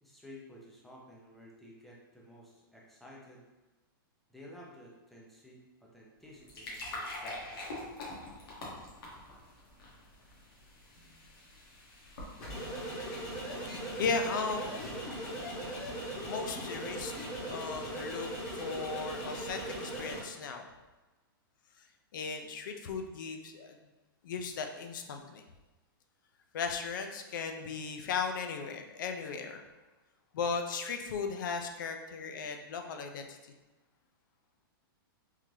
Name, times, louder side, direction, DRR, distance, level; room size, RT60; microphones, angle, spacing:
voice 1, 0.0-3.4 4.3-7.6, left 1 dB, ahead, -4 dB, 0.4 m, -53 dB
sound 1, 6.2-13.8, left 1 dB, 75° left, 1.3 m, -45 dB
sound 2, 12.4-20.2, right 1 dB, 35° left, 0.9 m, -39 dB
voice 2, 13.4-15.1 16.2-20.7 22.1-23.8 24.2-25.4 26.5-29.6 30.3-33.4, left 5 dB, 55° left, 5 dB, 0.4 m, -37 dB
3.7 x 2.7 x 3.0 m, 1.1 s
supercardioid pair, 165°, 12 cm